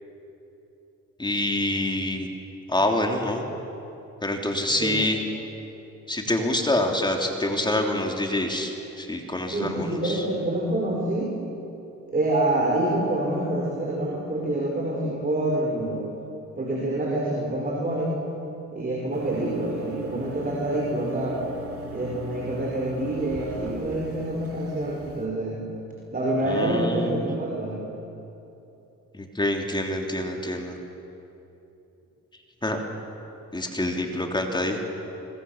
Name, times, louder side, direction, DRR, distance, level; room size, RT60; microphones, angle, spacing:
voice 1, 1.2-2.3 2.7-3.4 4.2-5.2 6.1-10.2 26.4-27.2 29.1-30.8 32.6-32.8 33.5-34.8, left 1 dB, 15° left, 2 dB, 3.2 m, -26 dB
voice 2, 4.7-5.1 9.5-11.3 12.1-16.0 16.6-18.2 18.7-21.4 21.9-25.6 26.1-27.8, right 1 dB, 30° right, -2 dB, 5.1 m, -27 dB
sound 1, 19.1-25.3, equal, 50° right, 3.3 m, -40 dB
25.5 x 23.0 x 7.3 m, 2.9 s
cardioid pair, 90°, 30 cm